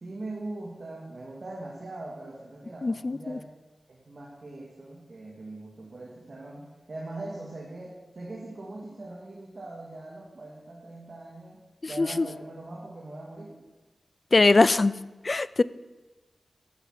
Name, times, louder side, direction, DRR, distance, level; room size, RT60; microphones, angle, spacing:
voice 1, 0.0-3.5 3.9-13.6, right 2 dB, 60° right, -3 dB, 2.3 m, -41 dB
voice 2, 2.8-3.2 12.0-12.3 14.3-14.9 15.2-15.6, left 3 dB, 50° left, 18 dB, 0.4 m, -21 dB
12.0 x 7.4 x 5.8 m, 1.2 s
cardioid pair, 50°, 0 cm